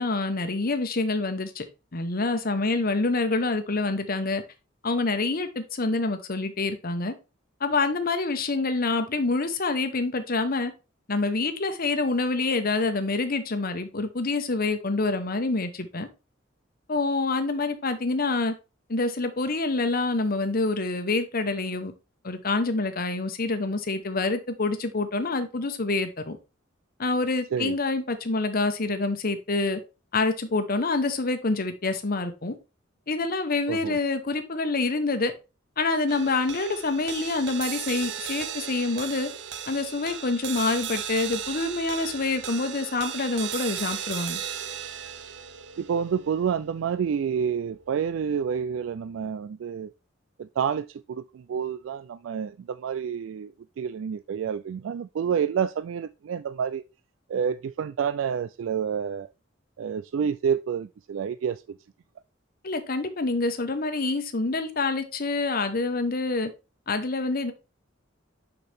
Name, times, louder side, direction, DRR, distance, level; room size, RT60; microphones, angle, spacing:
voice 1, 0.0-1.6 1.9-4.4 4.8-7.1 7.6-10.7 11.1-16.1 16.9-18.5 18.9-21.9 22.2-26.4 27.0-29.8 30.1-32.5 33.1-35.3 35.8-39.3 39.7-44.4 62.6-66.5 66.9-67.5, left 3 dB, 50° left, 1.1 m, -26 dB
voice 2, 33.7-34.0 45.8-49.9 50.4-56.8 57.3-59.3 59.8-61.6, right 7 dB, 80° right, 0.3 m, -29 dB
sound 1, 36.1-48.6, right 8 dB, 65° right, 0.8 m, -36 dB
6.6 x 5.9 x 3.5 m
head